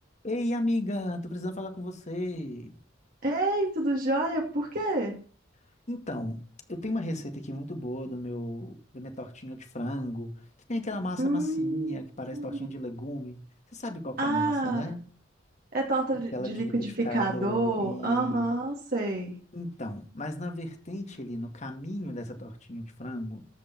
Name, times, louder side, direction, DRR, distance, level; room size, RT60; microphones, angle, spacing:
voice 1, 0.2-2.8 5.9-6.4 6.7-10.4 10.7-13.4 13.7-15.1 16.3-18.5 19.5-23.5, left 1 dB, 40° left, 2.1 m, -35 dB
voice 2, 3.2-5.2 11.2-12.0 12.3-12.7 14.2-14.9 15.7-19.4, right 2 dB, 50° right, 2.4 m, -28 dB
14.0 x 5.3 x 6.1 m
head